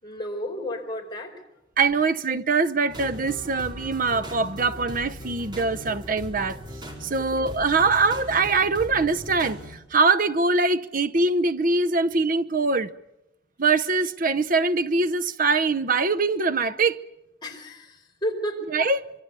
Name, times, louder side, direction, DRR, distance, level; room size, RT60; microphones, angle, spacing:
voice 1, 0.0-1.3 7.3-7.4 17.4-18.7, equal, 20° left, 4.7 m, -32 dB
voice 2, 1.8-6.6 7.0-12.9 13.6-17.0 18.7-19.1, right 3 dB, 45° right, 0.9 m, -23 dB
sound 1, 2.9-9.7, equal, 25° right, 4.4 m, -39 dB
25.5 x 23.5 x 7.0 m
head